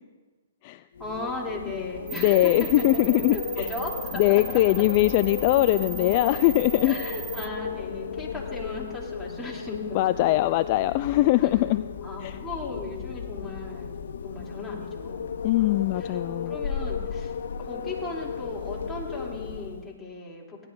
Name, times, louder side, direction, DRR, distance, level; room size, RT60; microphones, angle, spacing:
Wind, 0.9-20.0, left 6 dB, 70° left, 0.7 m, -35 dB
voice 1, 1.0-4.6 6.8-10.2 11.4-11.6 12.0-14.0 14.2-15.3 15.5-20.7, left 2 dB, 5° left, -5 dB, 3.0 m, -37 dB
voice 2, 2.1-3.7 4.1-6.9 9.9-11.8 12.2-12.4 15.4-16.5, left 17 dB, 40° left, 13 dB, 0.3 m, -22 dB
sound 1, 2.1-7.5, right 10 dB, 30° right, 0.6 m, -37 dB
18.0 x 11.5 x 2.6 m, 1.3 s
hypercardioid pair, 130°, 0 cm